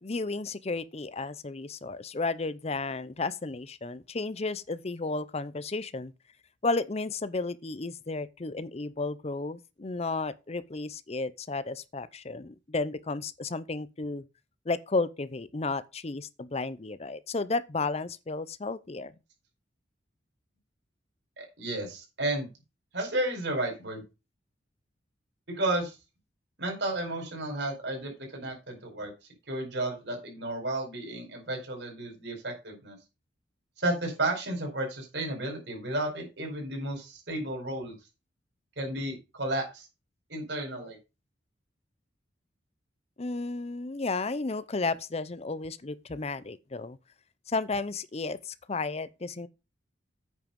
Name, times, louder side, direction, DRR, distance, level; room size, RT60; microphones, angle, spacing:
voice 1, 0.0-6.1 6.6-14.2 14.7-19.1 43.2-47.0 47.5-49.5, left 3 dB, 35° left, 0.6 m, -33 dB
voice 2, 21.4-22.5 22.9-24.0 25.5-26.0 26.6-29.1 29.5-33.0 33.8-37.9 38.8-39.9 40.3-41.0, right 1 dB, 65° right, 4.6 m, -32 dB
9.1 x 5.9 x 5.3 m
head